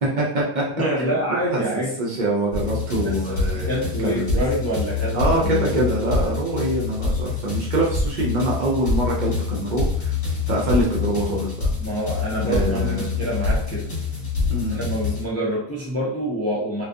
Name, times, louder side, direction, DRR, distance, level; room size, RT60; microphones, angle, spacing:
voice 1, 0.0-0.7 1.0-1.1 1.5-3.7 4.0-4.4 5.1-10.1 10.5-11.5 12.4-13.2 14.5-14.8, right 1 dB, 55° right, -3 dB, 0.6 m, -24 dB
voice 2, 0.8-1.9 3.0-5.9 11.8-13.9 14.7-16.8, right 1 dB, 25° left, -6 dB, 0.3 m, -26 dB
sound 1, 2.5-15.3, left 4 dB, 40° left, 1.1 m, -26 dB
2.3 x 2.2 x 2.5 m, 0.67 s
omnidirectional pair, 1.1 m